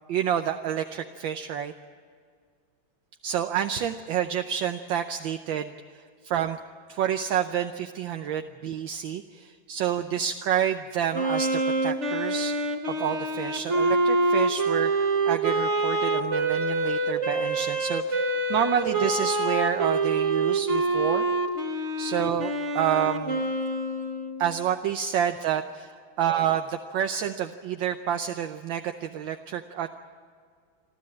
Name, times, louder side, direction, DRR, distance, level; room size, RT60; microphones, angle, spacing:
voice 1, 0.1-1.7 3.2-6.6 6.9-12.5 12.9-21.3 22.0-23.4 24.4-29.9, right 9 dB, 75° right, 7 dB, 1.5 m, -29 dB
Wind instrument woodwind instrument, 11.1-24.5, right 2 dB, 40° right, 1.8 m, -26 dB
27.5 x 12.5 x 8.6 m, 2.1 s
omnidirectional pair, 2.2 m